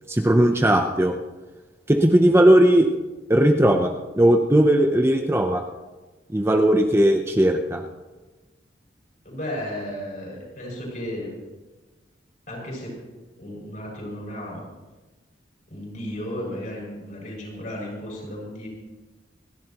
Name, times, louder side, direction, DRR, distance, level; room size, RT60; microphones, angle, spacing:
voice 1, 0.1-1.1 1.9-2.9 3.3-5.6 6.3-7.8, right 1 dB, 15° right, 3 dB, 0.7 m, -18 dB
voice 2, 9.2-11.3 12.5-12.9 13.4-14.6 15.7-18.7, equal, 45° left, -3 dB, 6.3 m, -34 dB
27.5 x 11.5 x 3.0 m, 1.2 s
head